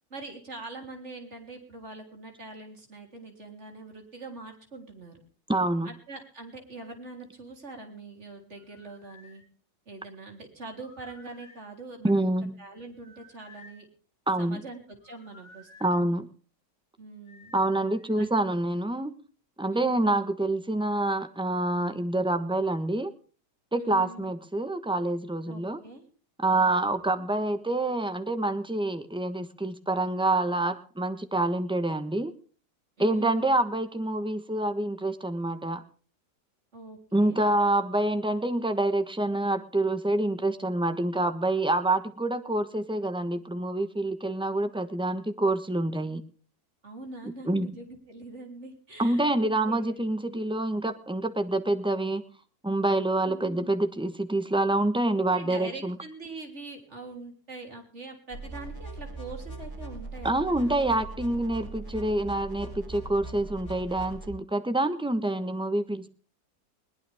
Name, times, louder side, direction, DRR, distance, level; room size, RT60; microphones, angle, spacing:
voice 1, 0.1-5.2 5.8-9.4 9.9-12.2 12.6-13.8 14.4-16.0 17.0-17.5 18.1-18.3 19.7-20.2 23.8-24.3 25.5-26.1 26.5-27.3 33.0-33.5 36.7-37.4 46.8-50.0 53.3-53.7 55.3-60.9, right 3 dB, 40° right, 3 dB, 4.0 m, -43 dB
voice 2, 5.5-5.9 12.0-12.5 14.3-14.6 15.8-16.3 17.5-19.1 19.6-23.1 23.7-25.8 26.4-32.3 33.0-35.8 37.1-46.2 47.5-47.8 49.0-52.2 52.6-56.0 60.2-66.1, right 2 dB, 5° right, 9 dB, 0.9 m, -27 dB
sound 1, 8.6-9.4 10.7-11.7 13.0-13.8 15.0-15.9 17.3-18.1, left 2 dB, 85° left, 7.7 m, -54 dB
sound 2, 58.3-64.3, right 2 dB, 65° left, 8.7 m, -40 dB
21.0 x 19.0 x 3.6 m, 0.41 s
omnidirectional pair, 1.9 m